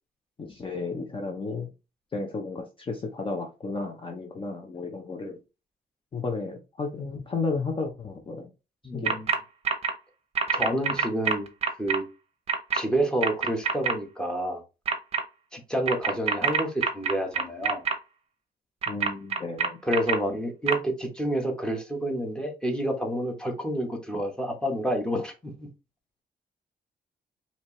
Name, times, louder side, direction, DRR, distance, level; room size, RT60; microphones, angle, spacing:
voice 1, 0.4-1.7 2.1-5.4 6.1-8.5 8.9-9.1 18.9-19.8, left 3 dB, 30° left, 0.7 m, -33 dB
voice 2, 8.8-9.3 10.5-11.5 11.8-12.0 12.7-14.6 15.5-17.8 19.8-25.7, right 1 dB, 5° left, 1.1 m, -29 dB
sound 1, 9.1-9.4 9.6-9.9 10.4-12.0 12.5-12.8 13.2-13.9 14.9-15.2 15.9-17.9 18.8-20.2 20.7-20.8, right 6 dB, 40° right, 0.7 m, -25 dB
4.4 x 2.8 x 3.1 m
cardioid pair, 125°, 17 cm